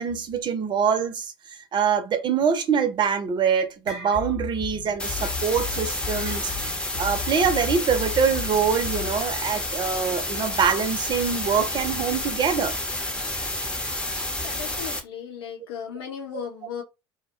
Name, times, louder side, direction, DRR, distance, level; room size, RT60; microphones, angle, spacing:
voice 1, 0.0-1.3 1.7-6.5 7.0-12.7, right 6 dB, 35° right, 0.6 m, -24 dB
sound 1, 3.1-3.3 3.6-4.7 5.0-5.2 6.2-6.9, right 3 dB, 85° right, 0.6 m, -41 dB
sound 2, 4.1-9.1, left 8 dB, 45° left, 0.8 m, -35 dB
sound 3, 5.0-15.0, left 1 dB, 5° left, 0.7 m, -30 dB
voice 2, 14.4-16.8, left 8 dB, 75° left, 0.7 m, -36 dB
2.2 x 2.1 x 2.8 m
hypercardioid pair, 70°, 13 cm